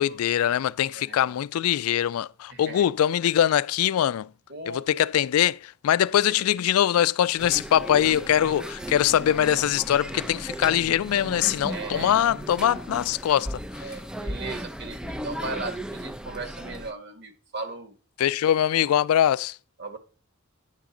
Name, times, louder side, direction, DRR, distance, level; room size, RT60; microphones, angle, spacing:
voice 1, 0.0-4.3 4.7-13.8 18.2-19.6, left 10 dB, 85° left, 0.3 m, -23 dB
voice 2, 2.5-2.8 4.5-4.8 6.2-6.5 11.7-12.1 12.7-12.8 13.8-18.0 19.8-20.0, right 3 dB, 55° right, 1.5 m, -37 dB
sound 1, 7.4-16.9, equal, 5° right, 0.4 m, -36 dB
9.1 x 3.8 x 7.0 m
head